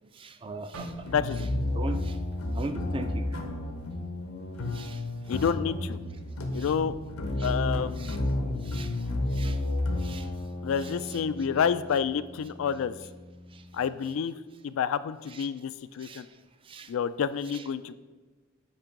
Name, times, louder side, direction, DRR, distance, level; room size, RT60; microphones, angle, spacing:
voice 1, 0.1-1.1 1.7-2.2 2.5-3.2 4.7-5.0 6.6-6.7 7.4-7.5 8.0-8.2 8.7-8.9 9.3-9.6 10.0-10.3 10.8-11.2 13.5-13.6 15.3-15.5 16.0-16.2 16.7-16.9 17.5-17.6, right 3 dB, 25° right, 9 dB, 0.4 m, -39 dB
sound 1, 0.7-4.8 5.1-5.4 6.0-6.4, right 2 dB, 75° right, 0.9 m, -48 dB
sound 2, 1.1-13.9, left 1 dB, 85° left, 0.9 m, -32 dB
voice 2, 1.1-1.5 5.3-6.0 6.5-7.0 7.4-8.2 10.6-12.9 13.7-14.3 14.6-16.3 16.9-17.9, left 7 dB, 70° left, 14 dB, 0.3 m, -29 dB
8.6 x 2.9 x 5.9 m, 1.3 s
head